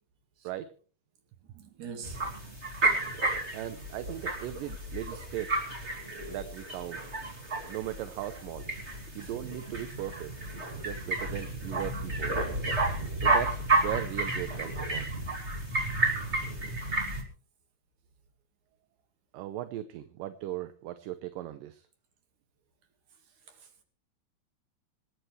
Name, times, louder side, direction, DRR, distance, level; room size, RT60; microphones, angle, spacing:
voice 1, 1.5-2.2 9.2-9.3 23.5-23.8, right 6 dB, 60° right, 3.3 m, -44 dB
sound 1, 2.0-17.2, right 2 dB, 20° right, 3.0 m, -31 dB
voice 2, 3.5-5.6 6.3-7.0 7.7-8.6 9.1-10.3 10.8-12.4 13.2-15.1 19.3-21.9, right 13 dB, 75° right, 2.4 m, -38 dB
26.5 x 11.0 x 3.3 m
omnidirectional pair, 4.2 m